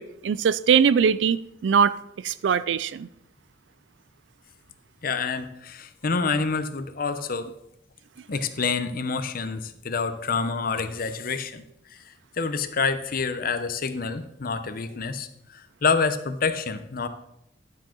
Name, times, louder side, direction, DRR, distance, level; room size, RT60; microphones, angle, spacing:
voice 1, 0.0-1.9 2.2-3.1, right 7 dB, 80° right, 0.4 m, -21 dB
voice 2, 5.0-7.5 8.3-11.6 11.9-12.0 12.4-17.1, left 4 dB, 50° left, 0.8 m, -27 dB
11.0 x 7.6 x 3.8 m
head